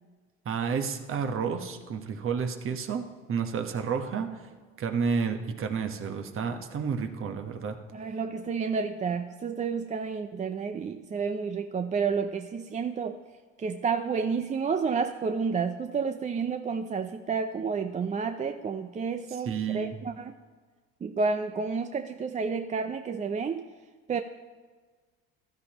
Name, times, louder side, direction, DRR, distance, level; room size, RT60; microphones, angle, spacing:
voice 1, 0.4-4.4 4.8-7.8 19.4-19.9, right 6 dB, 45° right, 6 dB, 1.2 m, -31 dB
voice 2, 7.9-13.2 13.6-20.4 21.0-23.7 24.1-24.2, right 5 dB, 25° right, 8 dB, 0.5 m, -30 dB
15.0 x 13.0 x 3.0 m, 1.4 s
supercardioid pair, 80°, 30 cm